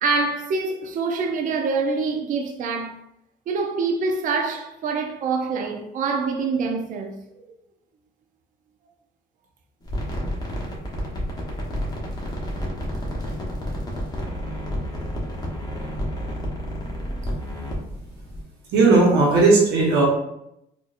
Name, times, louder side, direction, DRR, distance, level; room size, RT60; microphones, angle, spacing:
voice 1, 0.0-3.0 3.5-7.5, right 4 dB, 50° right, 0.5 m, -25 dB
sound 1, 9.8-18.4, equal, 25° left, 1.1 m, -30 dB
voice 2, 18.7-20.1, right 3 dB, 85° right, 1.2 m, -16 dB
4.1 x 2.7 x 2.5 m
cardioid pair, 110°, 17 cm